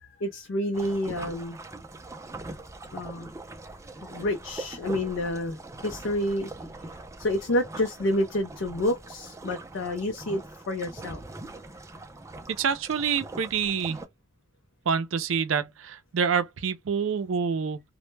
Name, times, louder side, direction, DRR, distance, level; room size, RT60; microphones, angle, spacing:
voice 1, 0.0-1.6 2.9-3.3 4.0-6.5 7.2-10.4 10.7-11.2, left 1 dB, 75° left, 0.5 m, -29 dB
sound 1, 0.7-14.1, right 2 dB, 15° right, 0.4 m, -42 dB
voice 2, 12.5-14.0 14.9-17.8, right 6 dB, 85° right, 0.4 m, -27 dB
2.1 x 2.1 x 3.1 m
head